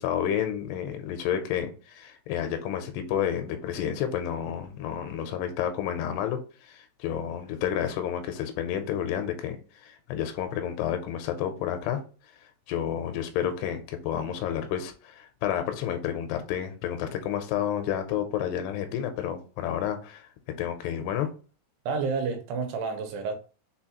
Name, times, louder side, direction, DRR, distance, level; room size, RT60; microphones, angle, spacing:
voice 1, 0.0-12.0 12.7-21.3, left 9 dB, 85° left, 2.7 m, -30 dB
voice 2, 21.9-23.3, right 4 dB, 85° right, 2.8 m, -29 dB
6.1 x 2.3 x 2.8 m
omnidirectional pair, 4.6 m